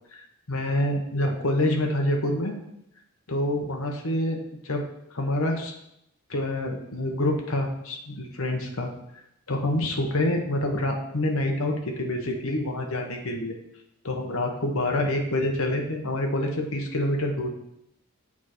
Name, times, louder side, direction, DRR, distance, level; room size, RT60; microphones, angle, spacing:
voice 1, 0.5-2.6 3.3-4.8 5.1-5.7 6.3-8.9 9.5-13.5 14.0-17.5, left 1 dB, 70° left, 2 dB, 1.2 m, -27 dB
7.4 x 4.8 x 4.4 m, 0.78 s
head